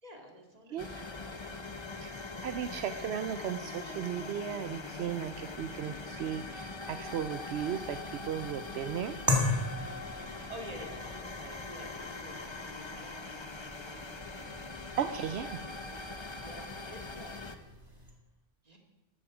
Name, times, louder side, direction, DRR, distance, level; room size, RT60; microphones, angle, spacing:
voice 1, 0.0-2.2 10.2-14.1 15.5-16.0 16.4-17.5 17.8-18.1 18.6-18.8, right 1 dB, 35° right, 2 dB, 2.2 m, -51 dB
voice 2, 0.7-1.0 2.0-2.1 2.4-9.2 15.0-15.6, right 9 dB, 75° right, 10 dB, 0.9 m, -36 dB
sound 1, 0.8-17.6, left 3 dB, 30° left, 0.8 m, -42 dB
sound 2, 9.3-18.1, left 2 dB, 20° right, 1.8 m, -38 dB
14.0 x 12.5 x 5.0 m, 1.1 s
omnidirectional pair, 1.1 m